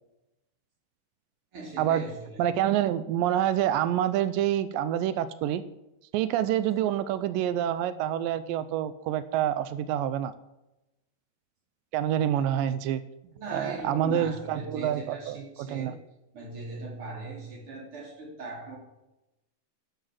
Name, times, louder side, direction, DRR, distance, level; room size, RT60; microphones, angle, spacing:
voice 1, 1.5-2.4 13.3-16.0 16.3-18.8, right 2 dB, 35° right, 0 dB, 3.8 m, -39 dB
voice 2, 2.4-5.6 6.1-10.3 11.9-13.0 13.5-15.9, right 11 dB, 90° right, 14 dB, 2.0 m, -27 dB
12.0 x 9.0 x 7.5 m, 0.96 s
omnidirectional pair, 4.7 m